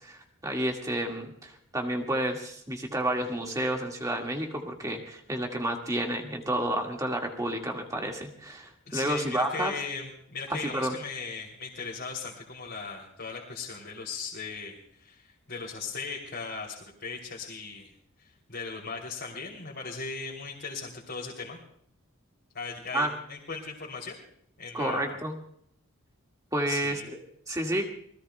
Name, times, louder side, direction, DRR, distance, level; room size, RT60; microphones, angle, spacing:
voice 1, 0.0-9.7 10.5-11.0 22.9-23.1 24.7-25.4 26.5-27.2 27.5-27.9, right 1 dB, 15° right, 1 dB, 1.8 m, -30 dB
voice 2, 8.9-17.9 18.2-21.6 22.5-24.2 24.6-25.2 26.7-27.1, left 4 dB, 50° left, -3 dB, 3.0 m, -38 dB
27.0 x 20.0 x 2.3 m, 0.67 s
head